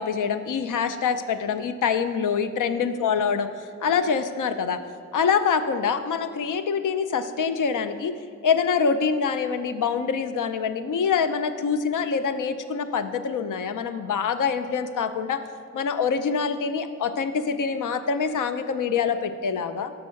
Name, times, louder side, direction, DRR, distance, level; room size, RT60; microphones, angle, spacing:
voice 1, 0.0-4.8 5.1-8.2 8.4-15.4 15.7-19.9, left 6 dB, 85° left, 10 dB, 0.5 m, -25 dB
6.1 x 4.7 x 6.3 m, 2.4 s
cardioid pair, 60°, 30 cm